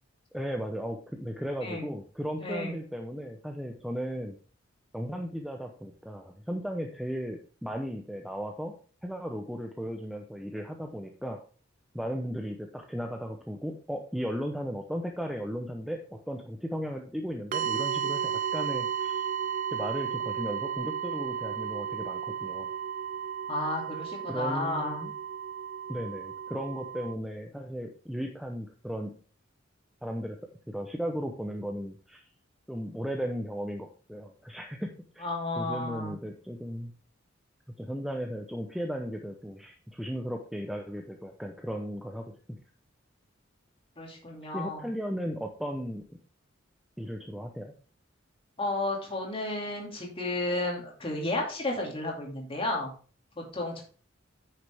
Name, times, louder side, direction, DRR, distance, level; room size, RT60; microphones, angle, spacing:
voice 1, 0.3-4.4 4.9-8.7 9.0-11.4 11.9-19.3 19.7-22.7 24.3-25.1 25.9-29.1 30.0-30.4 30.7-32.2 32.7-35.3 35.6-36.9 37.8-42.6 44.5-46.0 47.0-47.7, equal, ahead, 3 dB, 0.7 m, -36 dB
voice 2, 2.4-2.8 23.5-25.1 35.2-36.2 44.0-44.9 48.6-52.9 53.4-53.8, left 2 dB, 30° left, -1 dB, 2.5 m, -32 dB
sound 1, 17.5-27.1, right 8 dB, 45° right, 0.5 m, -33 dB
9.5 x 6.5 x 3.5 m, 0.40 s
head